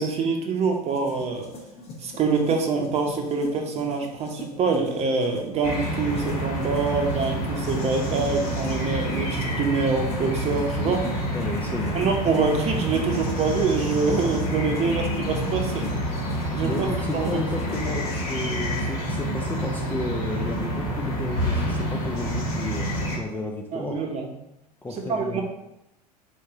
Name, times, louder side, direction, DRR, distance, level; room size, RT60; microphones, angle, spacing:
voice 1, 0.0-1.5 2.0-11.1 11.9-15.9 16.5-16.9 17.1-17.4 23.7-24.3 25.1-25.4, right 4 dB, 30° right, 3 dB, 0.8 m, -25 dB
sound 1, 0.7-18.0, left 2 dB, 30° left, 1.1 m, -42 dB
sound 2, 5.6-23.2, equal, 60° left, 1.5 m, -28 dB
voice 2, 11.3-12.0 16.6-22.9 23.2-24.0 24.8-25.4, left 2 dB, 10° left, -1 dB, 0.4 m, -32 dB
4.3 x 3.2 x 3.6 m, 0.88 s
figure-of-eight pair, 80°, 21 cm